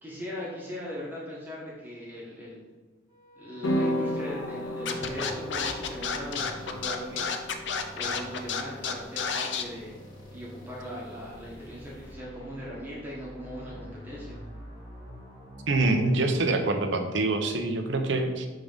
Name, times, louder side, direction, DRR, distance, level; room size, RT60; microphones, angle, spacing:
voice 1, 0.0-2.6 3.4-7.3 7.9-10.0 10.3-14.4, equal, 10° right, -6 dB, 1.5 m, -39 dB
sound 1, 3.1-17.0, equal, 25° left, 1.6 m, -46 dB
sound 2, 3.6-12.1, equal, 85° left, 1.0 m, -36 dB
Scratching (performance technique), 4.8-9.6, left 6 dB, 70° left, 0.6 m, -30 dB
voice 2, 15.7-18.5, right 2 dB, 70° right, 5 dB, 0.8 m, -25 dB
6.3 x 3.8 x 5.1 m, 1.3 s
head